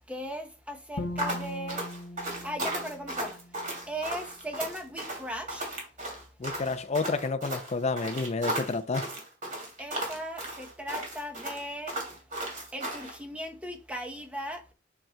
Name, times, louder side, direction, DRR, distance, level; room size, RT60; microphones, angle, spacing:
voice 1, 0.1-1.8 2.4-3.4 3.9-5.6 9.8-11.9 12.7-14.7, equal, 5° right, 0.8 m, -37 dB
Bowed string instrument, 1.0-4.1, left 1 dB, 85° left, 0.7 m, -40 dB
sound 1, 1.2-13.2, right 1 dB, 45° right, 2.8 m, -35 dB
voice 2, 6.4-9.1, left 3 dB, 35° left, 0.5 m, -30 dB
9.0 x 5.7 x 2.3 m
head